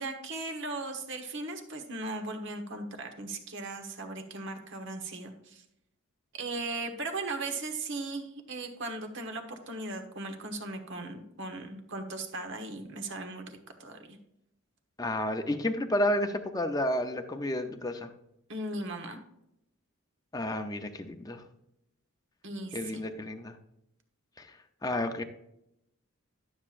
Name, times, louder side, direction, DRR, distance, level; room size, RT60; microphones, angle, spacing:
voice 1, 0.0-5.6 6.3-14.2 18.5-19.2 22.4-23.0, right 2 dB, 55° right, 6 dB, 1.2 m, -38 dB
voice 2, 15.0-18.1 20.3-21.4 22.7-23.5 24.4-24.6 24.8-25.2, left 1 dB, 15° left, 6 dB, 0.6 m, -31 dB
11.5 x 7.3 x 2.5 m, 0.80 s
head